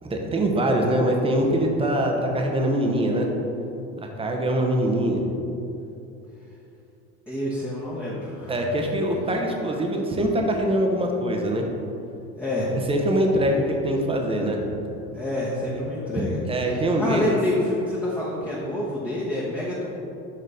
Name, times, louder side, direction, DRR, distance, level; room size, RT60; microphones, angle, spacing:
voice 1, 0.0-3.3 4.0-5.2 8.5-11.7 12.7-14.6 16.1-17.4, right 1 dB, 15° right, 1 dB, 0.9 m, -23 dB
voice 2, 7.3-8.6 12.4-12.8 15.1-16.4 16.7-19.9, left 1 dB, 5° left, -7 dB, 1.2 m, -27 dB
6.8 x 3.8 x 5.0 m, 2.8 s
supercardioid pair, 100°, 36 cm